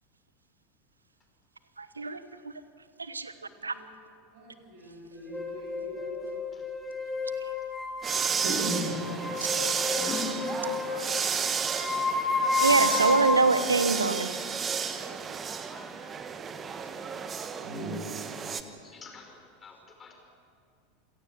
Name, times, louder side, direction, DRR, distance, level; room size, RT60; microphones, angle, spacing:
voice 1, 1.8-2.2 3.1-3.3 3.6-3.7 12.6-14.3, right 3 dB, 85° right, 13 dB, 1.1 m, -24 dB
voice 2, 4.3-6.4 8.4-9.0 17.6-18.0, right 1 dB, 60° right, -3 dB, 6.4 m, -37 dB
sound 1, 5.3-13.5, left 3 dB, 10° left, 4.1 m, -31 dB
sound 2, 8.0-18.6, right 6 dB, 25° right, 1.4 m, -32 dB
voice 3, 9.7-10.7 15.7-15.9 18.8-20.1, left 3 dB, 25° left, 3 dB, 5.2 m, -41 dB
27.5 x 17.5 x 7.6 m, 2.4 s
figure-of-eight pair, 85°, 0 cm